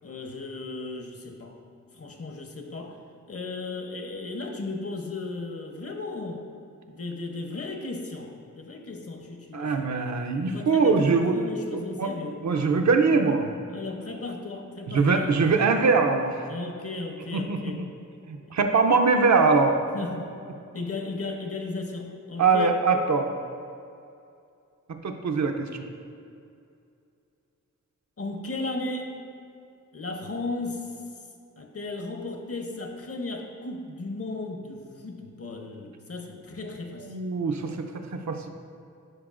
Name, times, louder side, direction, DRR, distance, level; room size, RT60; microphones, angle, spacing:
voice 1, 0.0-1.6 1.9-3.0 3.3-6.4 6.9-9.9 10.5-12.4 13.7-15.3 16.5-17.8 18.5-18.6 19.9-20.4 20.7-22.8 28.2-29.2 29.9-30.9 31.6-37.2, left 3 dB, 50° left, 3 dB, 0.8 m, -35 dB
voice 2, 9.5-11.4 12.0-12.1 12.4-13.5 14.9-16.5 17.3-17.6 18.3-19.8 22.4-23.3 25.0-25.8 37.0-38.5, right 4 dB, 65° right, 4 dB, 0.6 m, -22 dB
11.0 x 4.6 x 2.5 m, 2.5 s
wide cardioid pair, 85°, 31 cm